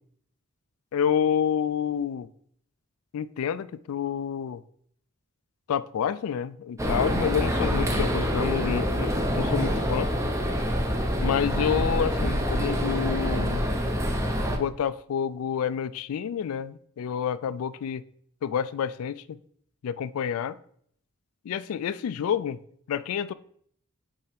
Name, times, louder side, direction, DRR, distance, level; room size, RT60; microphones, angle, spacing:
voice 1, 0.9-2.3 3.1-4.6 5.7-10.1 11.2-13.6 14.5-18.0 18.4-19.4 19.8-20.6 21.5-22.6 22.9-23.3, left 8 dB, 75° left, 0.3 m, -28 dB
sound 1, 6.8-14.6, equal, 15° right, 0.7 m, -26 dB
5.5 x 4.4 x 5.2 m
head